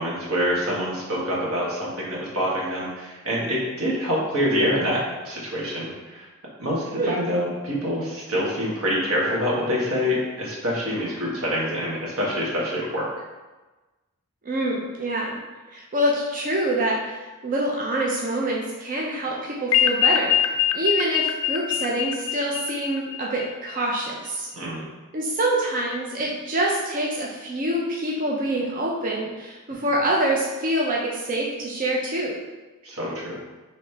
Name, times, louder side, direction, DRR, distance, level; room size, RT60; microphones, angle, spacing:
voice 1, 0.0-6.3 6.6-13.0 24.5-24.8 32.8-33.4, equal, 85° right, -5 dB, 1.4 m, -26 dB
voice 2, 14.4-15.4 15.7-24.5 25.1-32.4, right 1 dB, 40° right, -2 dB, 0.5 m, -26 dB
sound 1, 19.7-23.8, left 10 dB, 70° left, 0.3 m, -23 dB
4.5 x 3.2 x 3.3 m, 1.2 s
head